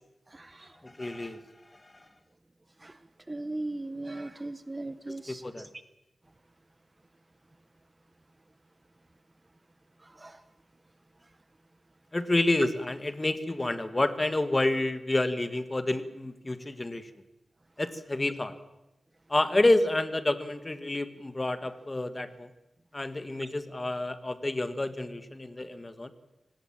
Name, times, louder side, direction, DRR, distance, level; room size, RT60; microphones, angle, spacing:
voice 1, 0.3-0.8 2.8-3.0 3.3-5.7 10.0-10.4, right 2 dB, 20° right, 13 dB, 0.8 m, -38 dB
voice 2, 0.8-1.4 1.7-1.9 5.3-5.7 12.1-17.1 17.8-18.5 19.3-22.5 22.9-26.1, left 2 dB, 20° left, 11 dB, 1.6 m, -29 dB
25.0 x 19.0 x 7.4 m, 0.95 s
wide cardioid pair, 135°, 0 cm